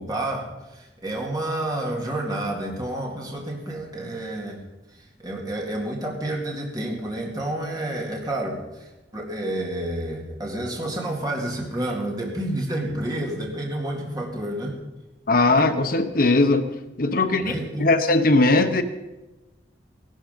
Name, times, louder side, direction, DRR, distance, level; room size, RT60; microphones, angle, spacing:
voice 1, 0.0-4.6 5.2-14.8 17.3-17.9, right 1 dB, 20° right, -1 dB, 2.1 m, -29 dB
voice 2, 15.3-16.7 17.0-17.5 17.8-18.8, left 2 dB, 50° left, 8 dB, 0.9 m, -19 dB
17.5 x 12.0 x 5.2 m, 1.0 s
head